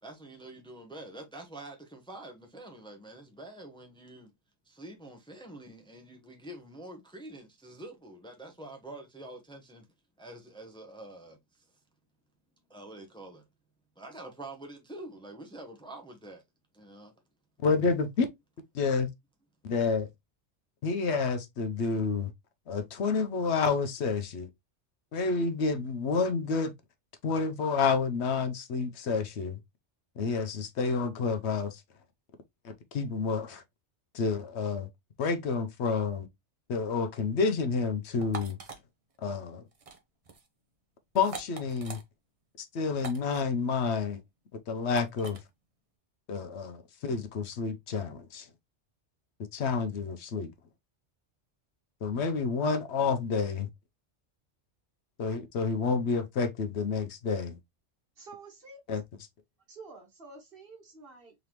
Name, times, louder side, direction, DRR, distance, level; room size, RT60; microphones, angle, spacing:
voice 1, 0.0-4.3 4.6-9.9 10.2-11.4 12.7-13.4 14.0-16.4 16.7-17.1, right 1 dB, 5° left, 0.8 m, -46 dB
voice 2, 17.6-18.3 18.7-19.1 19.6-20.1 20.8-22.3 22.7-24.5 25.1-26.7 27.2-29.6 30.2-31.8 32.6-33.6 34.1-34.9 35.2-36.3 36.7-38.6 39.2-39.6 41.1-42.0 42.6-44.2 44.7-45.4 46.3-48.5 49.5-50.5 52.0-53.7 55.2-57.6 58.9-59.0, left 4 dB, 70° left, 1.0 m, -29 dB
sound 1, 38.2-38.8 39.7-40.0 40.2-40.5 41.2-42.0 43.0-43.4 44.9-45.4, right 4 dB, 35° right, 0.7 m, -42 dB
voice 3, 58.2-58.8 59.7-61.3, right 3 dB, 50° right, 1.7 m, -49 dB
3.9 x 3.2 x 2.9 m
omnidirectional pair, 1.2 m